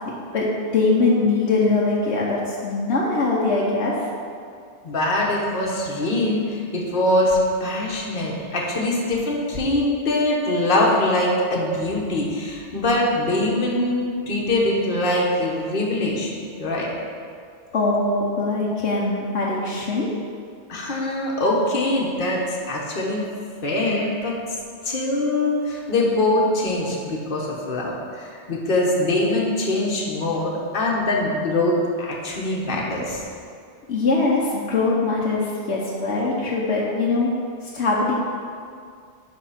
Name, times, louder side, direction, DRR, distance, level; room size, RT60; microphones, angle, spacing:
voice 1, 0.3-3.9 17.7-20.1 33.9-37.3 37.7-38.1, left 3 dB, 70° left, -4 dB, 1.2 m, -22 dB
voice 2, 4.8-16.9 20.7-23.2 23.6-24.6 24.8-33.2, left 1 dB, 50° left, -3 dB, 1.4 m, -23 dB
10.5 x 3.6 x 5.7 m, 2.2 s
omnidirectional pair, 1.2 m